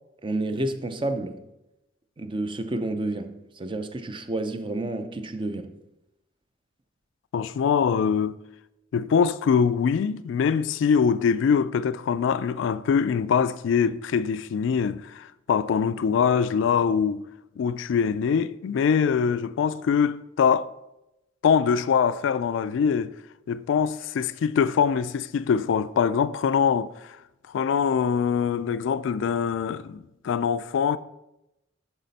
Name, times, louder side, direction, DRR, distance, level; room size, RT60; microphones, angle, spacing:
voice 1, 0.2-1.4 2.2-5.7, right 2 dB, 25° right, 0.5 m, -30 dB
voice 2, 7.3-8.4 8.9-17.2 17.6-20.7 21.4-23.1 23.5-27.2 27.5-31.0, left 6 dB, 70° left, 0.3 m, -23 dB
10.5 x 4.2 x 4.1 m
head